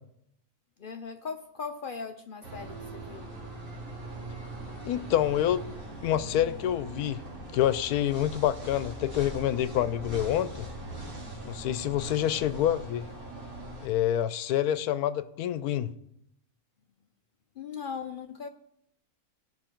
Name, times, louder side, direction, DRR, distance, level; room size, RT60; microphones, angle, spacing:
voice 1, 0.8-3.3 17.6-18.5, left 5 dB, 65° left, 0.5 m, -39 dB
sound 1, 2.4-13.9, right 1 dB, 65° right, 3.1 m, -41 dB
voice 2, 4.8-5.6 6.0-7.2 7.5-10.7 11.4-13.1 13.8-15.9, left 11 dB, 85° left, 1.1 m, -27 dB
16.5 x 6.0 x 4.5 m
omnidirectional pair, 1.6 m